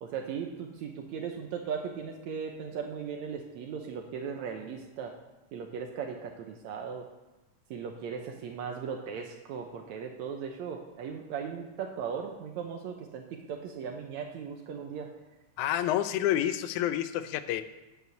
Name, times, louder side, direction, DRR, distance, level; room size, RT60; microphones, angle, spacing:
voice 1, 0.0-5.1 5.5-7.1 7.7-15.1, right 6 dB, 75° right, 2 dB, 2.0 m, -37 dB
voice 2, 15.6-17.6, left 12 dB, 80° left, 12 dB, 2.0 m, -28 dB
9.3 x 8.4 x 7.0 m, 1.0 s
omnidirectional pair, 3.5 m